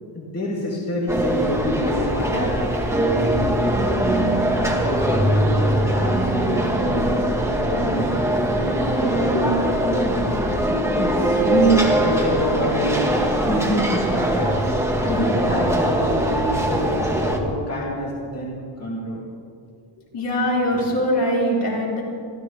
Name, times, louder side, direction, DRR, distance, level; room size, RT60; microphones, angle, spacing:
voice 1, 0.1-8.3 8.5-10.4 11.0-13.2 13.5-14.6 14.8-16.9 17.3-19.3, equal, 30° left, -5 dB, 2.9 m, -26 dB
sound 1, 1.1-17.4, right 1 dB, 5° right, 1.5 m, -21 dB
voice 2, 20.1-22.0, equal, 60° left, -5 dB, 5.3 m, -22 dB
26.5 x 15.0 x 3.4 m, 2.1 s
wide cardioid pair, 155°, 47 cm